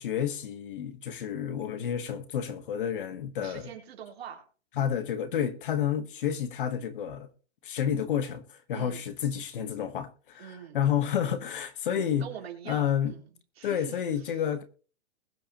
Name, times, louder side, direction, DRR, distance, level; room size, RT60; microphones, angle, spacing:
voice 1, 0.0-3.7 4.8-7.3 7.6-12.2 12.7-13.1 13.6-14.6, left 9 dB, 45° left, 1.3 m, -30 dB
voice 2, 3.4-4.4 4.8-5.0 8.7-9.0 10.4-10.8 11.9-13.3 13.6-13.9, right 9 dB, 60° right, 3.8 m, -44 dB
21.0 x 7.9 x 2.9 m
hypercardioid pair, 180°, 35 cm